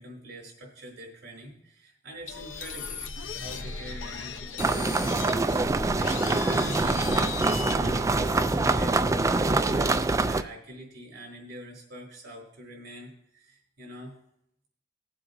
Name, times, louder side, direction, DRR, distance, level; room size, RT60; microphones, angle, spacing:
voice 1, 0.0-3.0 3.4-14.2, equal, 65° right, -1 dB, 4.1 m, -44 dB
sound 1, 2.3-9.1, left 4 dB, 85° left, 0.9 m, -37 dB
sound 2, 4.6-10.4, right 3 dB, 15° right, 0.3 m, -25 dB
20.0 x 7.5 x 2.7 m, 0.75 s
head